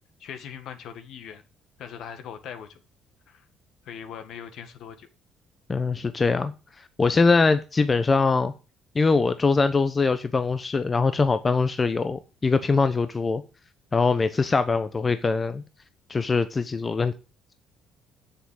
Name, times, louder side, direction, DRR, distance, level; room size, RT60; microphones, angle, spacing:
voice 1, 0.2-1.4 1.8-2.8 3.3-3.5 3.9-5.1, left 8 dB, 70° left, 9 dB, 1.7 m, -40 dB
voice 2, 5.7-6.5 7.0-8.5 8.9-13.4 13.9-15.6 16.1-17.1, left 4 dB, 30° left, 11 dB, 1.0 m, -22 dB
7.3 x 6.7 x 8.0 m, 0.32 s
supercardioid pair, 70°, 0 cm